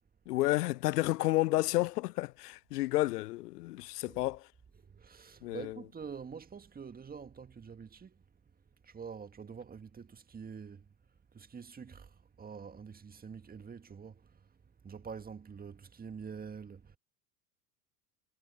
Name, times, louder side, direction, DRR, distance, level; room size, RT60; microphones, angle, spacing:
voice 1, 0.3-4.4 5.4-5.7, left 18 dB, 75° left, 0.5 m, -31 dB
voice 2, 4.7-8.2 8.8-10.9 11.3-17.0, right 6 dB, 20° right, 1.8 m, -46 dB
hypercardioid pair, 90°, 47 cm